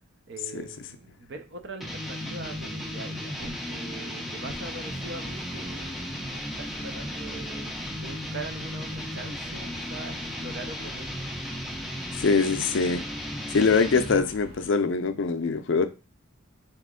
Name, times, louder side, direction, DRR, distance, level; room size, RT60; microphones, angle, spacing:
voice 1, 0.3-11.3, right 2 dB, 55° right, 0.7 m, -42 dB
sound 1, 1.8-14.3, equal, ahead, 0.4 m, -35 dB
sound 2, 4.5-14.7, equal, 25° right, 1.9 m, -49 dB
voice 2, 12.2-13.0 13.5-15.9, left 4 dB, 60° left, 0.5 m, -23 dB
4.1 x 3.0 x 3.6 m
head